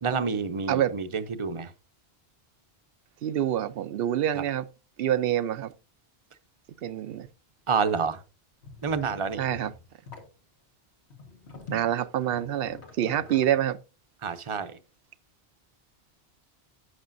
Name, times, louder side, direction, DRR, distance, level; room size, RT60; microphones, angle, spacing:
voice 1, 0.0-1.7 7.7-8.2 8.8-9.4 14.2-14.7, right 5 dB, 35° right, 0.7 m, -28 dB
voice 2, 3.2-4.7 5.0-5.7 6.8-7.3 9.4-9.7 11.7-13.8, right 11 dB, 70° right, 0.7 m, -26 dB
sound 1, 8.6-10.3 11.1-13.7, left 4 dB, 85° left, 1.9 m, -45 dB
11.5 x 8.1 x 2.6 m
omnidirectional pair, 1.1 m